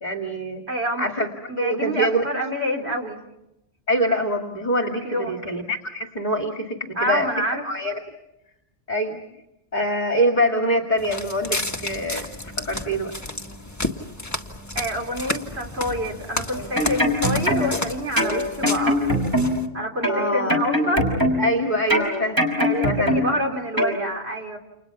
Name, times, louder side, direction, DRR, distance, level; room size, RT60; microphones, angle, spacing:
voice 1, 0.0-0.6 1.0-2.2 2.8-2.9 3.9-7.3 7.6-7.9 8.9-9.2 9.7-12.3 12.6-13.1 20.1-20.6 21.4-22.4 22.8-23.4, equal, 40° left, 3 dB, 2.4 m, -24 dB
voice 2, 0.7-1.1 1.5-3.2 5.0-5.4 7.0-7.6 14.7-19.0 19.7-21.1 22.6-24.6, equal, 60° right, 2 dB, 3.9 m, -27 dB
Walk footsteps, 11.0-19.7, left 1 dB, 15° left, 1.7 m, -31 dB
sound 1, 16.5-17.8 18.2-19.7 20.0-21.6 21.9-23.4 23.8-24.0, left 1 dB, 15° right, 5.7 m, -22 dB
30.0 x 29.5 x 6.0 m, 0.89 s
omnidirectional pair, 1.2 m